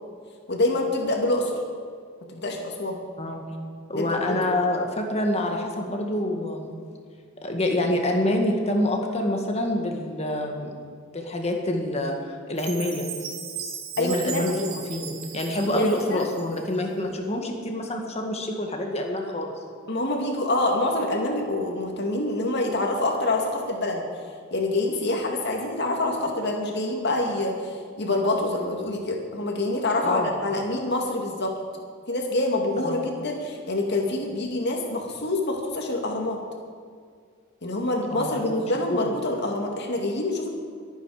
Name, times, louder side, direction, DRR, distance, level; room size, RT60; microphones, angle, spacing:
voice 1, 0.5-1.5 2.3-3.0 3.9-4.6 14.0-14.7 15.6-16.3 19.9-24.0 24.5-31.5 32.1-36.4 37.6-40.5, left 2 dB, 55° left, 1 dB, 2.3 m, -26 dB
voice 2, 3.2-3.5 3.9-6.7 7.4-10.7 11.1-13.1 14.0-14.5 14.9-19.5 30.0-30.3 32.8-33.0 38.1-38.4 38.9-39.0, left 1 dB, 30° left, 2 dB, 1.8 m, -27 dB
Chime, 12.6-16.8, right 7 dB, 90° right, 1.9 m, -37 dB
23.0 x 9.1 x 5.0 m, 2.1 s
head